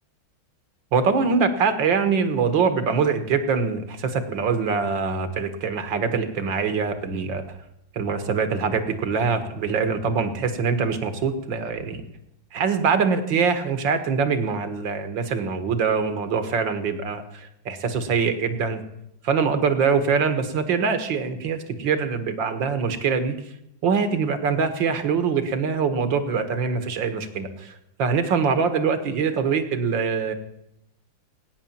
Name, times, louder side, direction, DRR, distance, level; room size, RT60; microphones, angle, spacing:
voice 1, 0.9-7.4 7.9-12.0 12.5-18.8 19.2-23.4 23.8-27.7 28.0-30.3, right 5 dB, 65° right, 9 dB, 2.1 m, -23 dB
18.0 x 9.7 x 7.3 m, 0.81 s
omnidirectional pair, 2.3 m